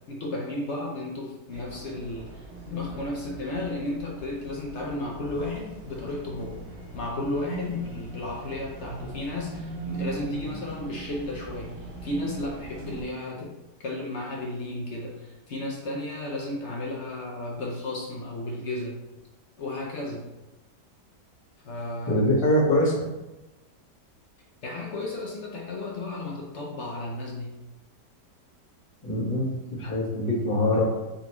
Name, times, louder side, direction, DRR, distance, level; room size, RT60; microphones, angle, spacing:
voice 1, 0.1-6.7 6.9-11.8 12.0-19.1 19.6-20.3 21.6-22.2 24.6-27.6, left 2 dB, 65° left, -2 dB, 0.7 m, -33 dB
sound 1, 1.5-13.0, right 3 dB, 65° right, 1.3 m, -40 dB
voice 2, 22.1-23.0 29.0-30.8, left 1 dB, 20° left, -8 dB, 1.3 m, -23 dB
4.0 x 3.7 x 3.0 m, 1.0 s
omnidirectional pair, 1.8 m